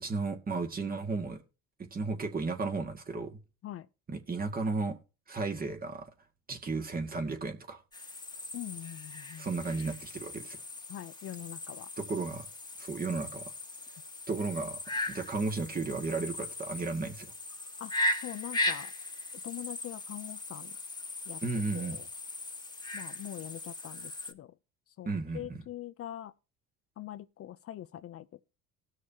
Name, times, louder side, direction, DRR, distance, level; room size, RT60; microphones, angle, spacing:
voice 1, 0.0-1.4 1.9-3.4 4.1-5.0 5.3-6.1 6.5-7.8 9.4-10.6 12.0-12.5 12.8-13.5 14.3-17.3 21.4-22.0 25.0-25.6, right 3 dB, 25° right, 1.9 m, -34 dB
sound 1, 7.9-24.3, left 1 dB, 15° left, 1.5 m, -38 dB
voice 2, 8.5-9.5 10.9-11.9 17.8-17.9 18.2-18.9 19.4-20.8 21.3-21.4 21.7-22.1 22.9-24.6 24.9-26.3 27.0-28.4, left 12 dB, 45° left, 0.6 m, -43 dB
19.0 x 6.5 x 2.8 m
supercardioid pair, 100°, 32 cm